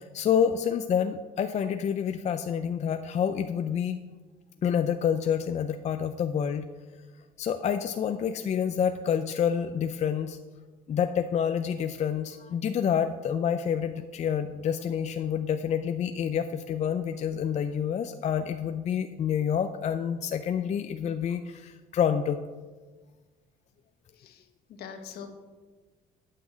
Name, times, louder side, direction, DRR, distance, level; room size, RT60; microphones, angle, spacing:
voice 1, 0.0-4.0 4.6-6.7 7.4-10.4 10.9-22.4, left 8 dB, 40° left, 8 dB, 0.5 m, -28 dB
voice 2, 24.1-25.3, left 7 dB, 70° left, 6 dB, 1.4 m, -44 dB
9.3 x 5.9 x 7.4 m, 1.4 s
cardioid pair, 110°, 17 cm